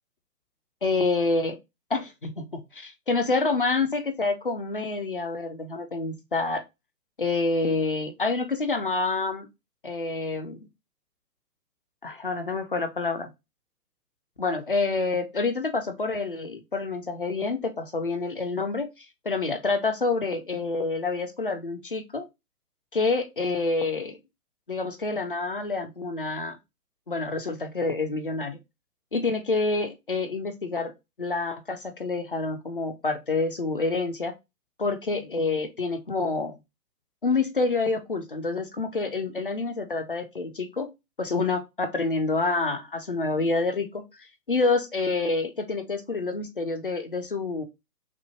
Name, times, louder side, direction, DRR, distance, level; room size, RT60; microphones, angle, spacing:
voice 1, 0.8-1.5 1.9-6.6 7.2-9.5 9.8-10.6 12.0-13.3 14.4-22.3 22.9-24.2 24.7-26.6 27.1-28.6 29.1-30.9 31.2-34.3 34.8-36.6 37.2-40.9 41.2-47.7, left 3 dB, 35° left, 0.5 m, -27 dB
5.9 x 2.0 x 2.8 m
figure-of-eight pair, 135°, 49 cm